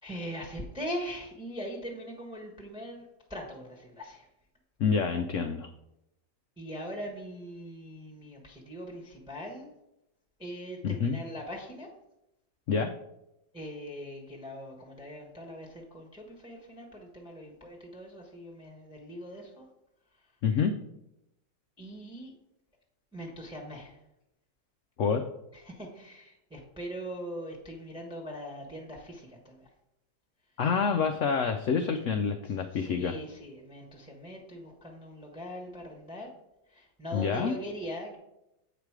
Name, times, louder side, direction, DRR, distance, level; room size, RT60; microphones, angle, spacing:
voice 1, 0.0-4.3 6.6-9.7 10.4-11.9 13.5-19.6 21.8-22.3 23.1-24.0 25.5-29.7 32.4-36.3 36.7-38.2, equal, 5° right, -1 dB, 1.1 m, -41 dB
voice 2, 4.8-5.7 10.8-11.2 12.7-12.9 20.4-20.8 25.0-25.2 30.6-33.1 37.1-37.5, left 6 dB, 80° left, 7 dB, 0.7 m, -27 dB
8.2 x 5.1 x 4.7 m, 0.87 s
omnidirectional pair, 1.9 m